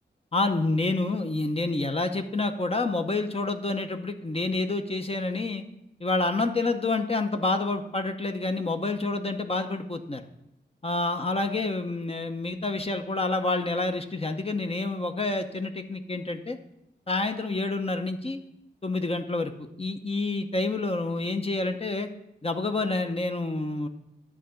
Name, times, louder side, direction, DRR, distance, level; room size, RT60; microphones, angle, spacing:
voice 1, 0.3-5.6 6.0-10.2 10.8-16.6 17.1-18.4 18.8-22.1 22.4-23.9, left 2 dB, 30° left, 6 dB, 0.7 m, -28 dB
11.0 x 3.8 x 6.9 m, 0.81 s
wide cardioid pair, 80°, 19 cm